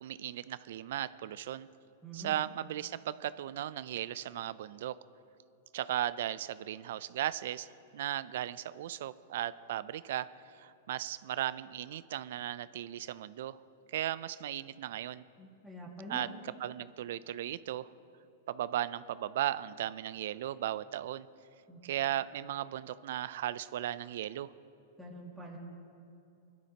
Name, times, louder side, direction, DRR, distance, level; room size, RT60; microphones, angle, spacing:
voice 1, 0.0-1.7 2.1-5.0 5.7-10.3 10.6-13.6 13.9-15.2 16.1-17.9 18.5-21.3 21.8-24.5, right 12 dB, 65° right, 17 dB, 0.4 m, -36 dB
voice 2, 2.0-2.4 15.4-16.3 21.7-21.8 25.0-25.6, right 1 dB, ahead, -6 dB, 2.1 m, -45 dB
21.5 x 12.0 x 2.9 m, 2.6 s
supercardioid pair, 150°, 0 cm